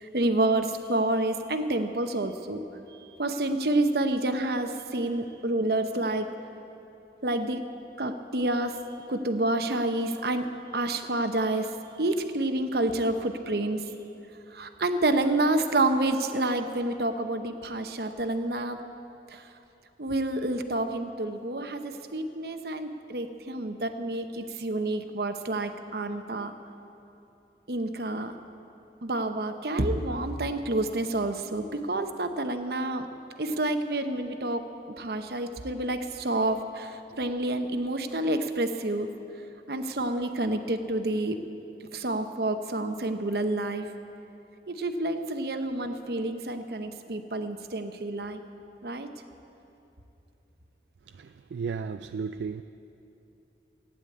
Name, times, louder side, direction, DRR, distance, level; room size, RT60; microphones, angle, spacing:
voice 1, 0.0-2.6 3.0-6.3 7.2-7.7 8.0-8.8 9.1-11.7 12.0-13.8 14.5-18.8 19.3-19.4 20.0-26.5 27.7-28.3 29.0-33.1 33.4-34.7 35.0-39.1 39.7-41.4 41.9-43.9 44.7-48.4 48.8-49.1, right 2 dB, 60° right, 8 dB, 0.9 m, -28 dB
voice 2, 51.1-52.6, right 5 dB, 75° right, 10 dB, 0.3 m, -34 dB
15.5 x 10.0 x 8.5 m, 2.9 s
head